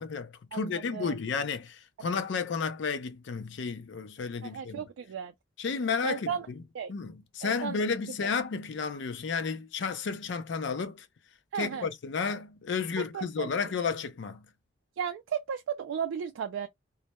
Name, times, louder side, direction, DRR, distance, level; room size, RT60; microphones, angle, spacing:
voice 1, 0.0-4.8 5.6-6.6 6.9-11.1 11.5-14.5, left 5 dB, 70° left, 0.4 m, -32 dB
voice 2, 0.5-1.1 4.4-5.3 6.0-6.5 6.7-6.9 7.4-7.9 8.2-8.3 11.5-11.9 13.0-13.5 15.0-16.7, right 7 dB, 85° right, 0.3 m, -35 dB
2.1 x 2.1 x 2.8 m
head